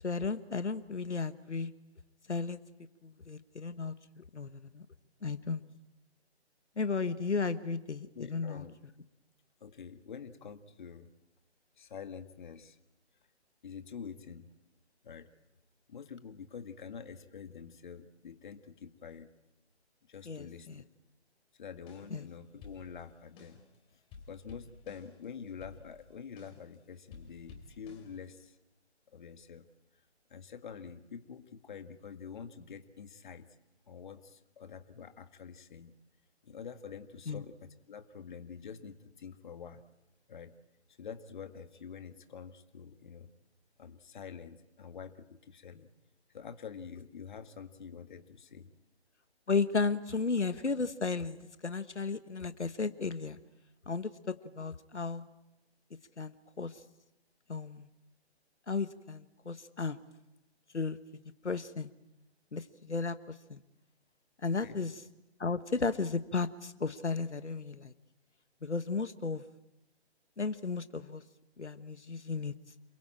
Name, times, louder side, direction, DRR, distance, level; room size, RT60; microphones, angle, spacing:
voice 1, 0.0-1.7 2.3-2.6 3.0-4.8 5.2-5.6 6.8-8.6 20.2-20.8 22.1-22.3 37.3-37.4 49.5-53.4 53.9-55.3 56.2-56.8 57.5-57.9 58.7-60.0 60.7-61.0 61.4-61.9 62.5-63.6 64.4-65.0 65.4-67.9 68.6-69.4 70.4-71.2 71.6-72.5, left 4 dB, 85° left, 12 dB, 1.4 m, -34 dB
voice 2, 8.2-8.8 9.6-11.1 11.8-12.8 13.6-14.5 15.0-15.3 15.9-19.3 20.1-20.7 21.5-23.6 23.9-24.0 24.3-28.6 29.1-29.7 30.3-33.5 33.9-35.9 36.4-39.8 40.3-40.5 41.0-43.3 43.8-45.9 46.3-48.7 64.6-64.8, left 6 dB, 45° left, 9 dB, 1.8 m, -47 dB
sound 1, 21.7-22.3 22.6-23.8 24.1-26.8 27.1-28.5, left 4 dB, 15° left, 3.7 m, -53 dB
28.0 x 22.0 x 8.8 m, 0.93 s
figure-of-eight pair, 150°, 34 cm